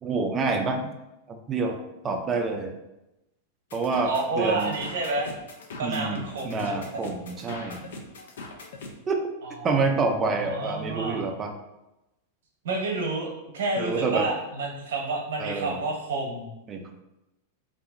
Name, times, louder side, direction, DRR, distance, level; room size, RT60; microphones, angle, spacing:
voice 1, 0.0-0.9 1.3-2.8 3.7-4.8 5.8-7.9 9.1-9.2 9.6-11.5 13.8-14.3 15.4-15.8 16.7-16.9, right 4 dB, 20° right, 3 dB, 0.4 m, -27 dB
sound 1, 3.7-8.9, left 3 dB, 85° left, 0.4 m, -41 dB
voice 2, 4.1-5.3 5.8-6.9 9.4-9.6 10.2-11.2 12.6-16.5, right 3 dB, 80° right, 0 dB, 0.8 m, -30 dB
2.8 x 2.5 x 2.4 m, 0.93 s
hypercardioid pair, 135°, 0 cm